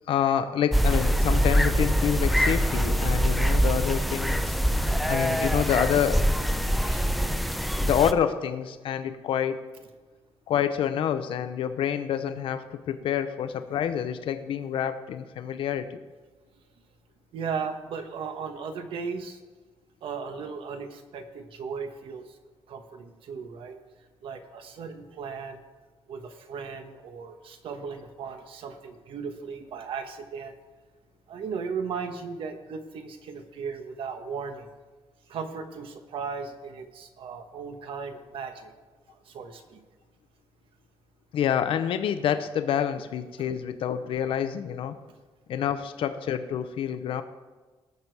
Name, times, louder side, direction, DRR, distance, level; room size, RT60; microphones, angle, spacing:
voice 1, 0.1-4.5 5.1-6.2 7.8-9.6 10.5-16.0 41.3-45.0 45.5-47.2, left 9 dB, 80° left, 10 dB, 0.8 m, -27 dB
sound 1, 0.7-8.1, equal, ahead, 0.4 m, -24 dB
voice 2, 17.3-19.4 20.0-22.4 22.7-23.8 24.2-25.6 26.1-30.5 31.3-34.7 35.3-38.8 39.1-39.8 43.4-43.5, right 5 dB, 75° right, 6 dB, 1.3 m, -36 dB
19.0 x 7.0 x 4.7 m, 1.3 s
wide cardioid pair, 170°, 9 cm